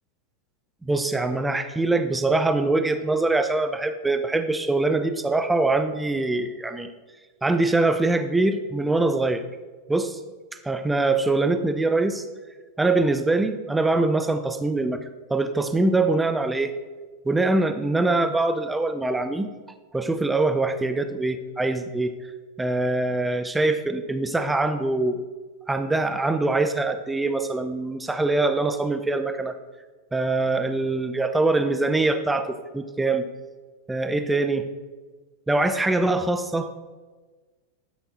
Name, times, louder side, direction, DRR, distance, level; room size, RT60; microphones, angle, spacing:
voice 1, 0.8-6.9 7.4-9.5 9.9-10.2 10.6-12.3 12.8-15.0 15.3-16.7 17.3-19.5 19.9-22.1 22.6-25.2 25.7-29.6 30.1-33.3 33.9-34.7 35.5-36.7, right 2 dB, 10° right, 9 dB, 0.7 m, -23 dB
12.0 x 10.0 x 3.8 m, 1.3 s
figure-of-eight pair, 90°, 0 cm